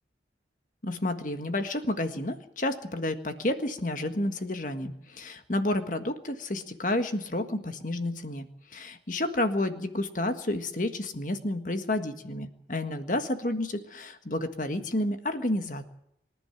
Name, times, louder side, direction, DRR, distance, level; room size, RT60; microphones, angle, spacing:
voice 1, 0.8-15.9, left 1 dB, 45° left, 8 dB, 1.6 m, -30 dB
25.5 x 11.0 x 9.3 m, 0.77 s
head